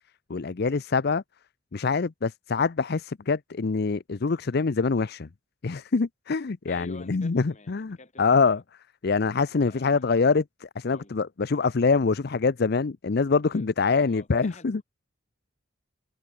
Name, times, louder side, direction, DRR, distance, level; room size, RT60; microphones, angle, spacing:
voice 1, 0.3-1.2 1.7-5.3 5.6-8.6 9.0-14.8, left 4 dB, 55° left, 0.6 m, -25 dB
voice 2, 6.7-8.6 9.6-10.1 10.9-11.2 13.5-14.8, left 3 dB, 35° left, 3.8 m, -49 dB
head